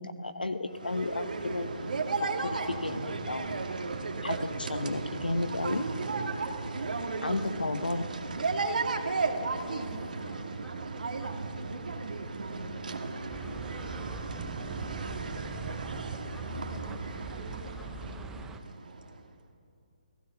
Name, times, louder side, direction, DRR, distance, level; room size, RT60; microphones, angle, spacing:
voice 1, 0.0-3.6 4.2-5.9 7.2-8.0, left 2 dB, 80° left, 11 dB, 1.0 m, -33 dB
sound 1, 0.7-19.2, right 3 dB, 65° right, 2.0 m, -35 dB
voice 2, 7.0-7.5 7.7-8.0 9.4-18.3, left 1 dB, 10° left, 0 dB, 3.0 m, -53 dB
sound 2, 13.3-18.6, right 4 dB, 10° right, 0.9 m, -43 dB
29.5 x 17.5 x 5.9 m, 2.6 s
figure-of-eight pair, 140°, 5 cm